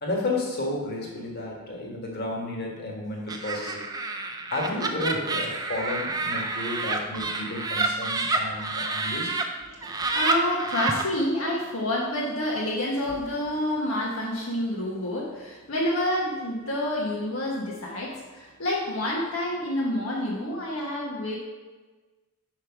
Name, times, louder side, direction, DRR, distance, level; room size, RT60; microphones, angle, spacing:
voice 1, 0.0-3.8 4.5-9.3, left 2 dB, 50° left, -1 dB, 1.6 m, -32 dB
Laughter, 3.3-9.4 9.8-11.0, right 3 dB, 20° right, 0.5 m, -28 dB
voice 2, 9.7-21.4, left 1 dB, 75° left, -4 dB, 1.2 m, -28 dB
5.6 x 4.8 x 6.0 m, 1.3 s
head